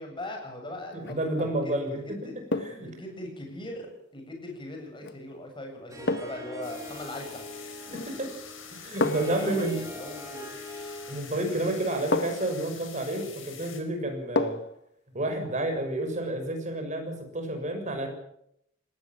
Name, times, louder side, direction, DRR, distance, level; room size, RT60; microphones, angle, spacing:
voice 1, 0.0-2.3 2.8-7.5 8.9-10.5 11.4-11.6, left 1 dB, 25° left, 3 dB, 7.7 m, -40 dB
sound 1, 0.9-1.3 2.5-2.9 5.0-5.2 6.1-6.5 7.9-8.3 9.0-9.4 11.1-11.2 12.1-12.6 14.4-14.8 15.2-15.3, left 2 dB, 60° left, 1.3 m, -30 dB
voice 2, 0.9-2.0 2.5-2.9 7.9-8.3 8.7-9.8 11.1-14.6 15.1-18.1, right 1 dB, 40° right, 5 dB, 6.6 m, -30 dB
Harp, 5.9-11.4, left 1 dB, 15° right, 5.6 m, -43 dB
sound 2, 6.6-13.8, left 8 dB, 80° left, 5.4 m, -46 dB
20.0 x 17.0 x 9.1 m, 0.76 s
head